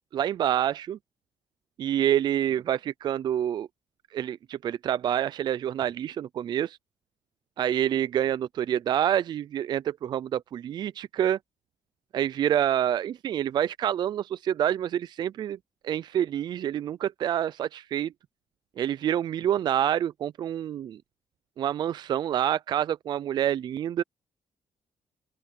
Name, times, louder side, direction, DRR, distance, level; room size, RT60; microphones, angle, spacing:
voice 1, 0.1-1.0 1.8-3.7 4.1-6.8 7.6-11.4 12.1-15.6 15.8-18.1 18.8-21.0 21.6-24.0, right 10 dB, 50° right, 0.3 m, -27 dB
open air
cardioid pair, 145°, 10 cm